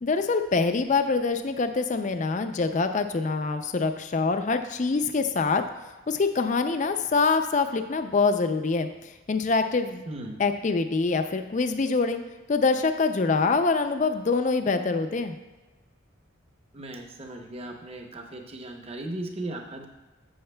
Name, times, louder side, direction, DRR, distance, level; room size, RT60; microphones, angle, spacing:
voice 1, 0.0-5.6 6.1-10.0 10.4-12.2 12.5-15.4, left 4 dB, 35° left, 8 dB, 0.4 m, -25 dB
voice 2, 10.1-10.4 16.7-19.9, right 1 dB, 30° right, 3 dB, 0.7 m, -37 dB
11.0 x 8.5 x 2.2 m, 1.2 s
head